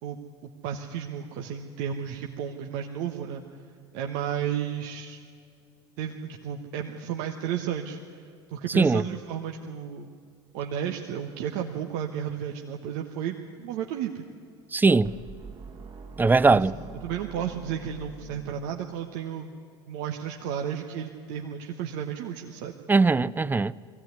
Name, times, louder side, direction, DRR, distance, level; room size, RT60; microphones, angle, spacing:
voice 1, 0.0-3.4 3.9-5.2 6.0-10.1 10.5-14.2 16.5-16.7 17.0-19.5 19.9-22.7, right 9 dB, 65° right, 1.3 m, -33 dB
voice 2, 14.7-15.1 16.2-16.7 22.9-23.7, right 3 dB, 15° right, 0.5 m, -20 dB
sound 1, 15.0-19.1, right 5 dB, 35° right, 2.1 m, -44 dB
21.0 x 16.0 x 9.5 m
hypercardioid pair, 75°, 14 cm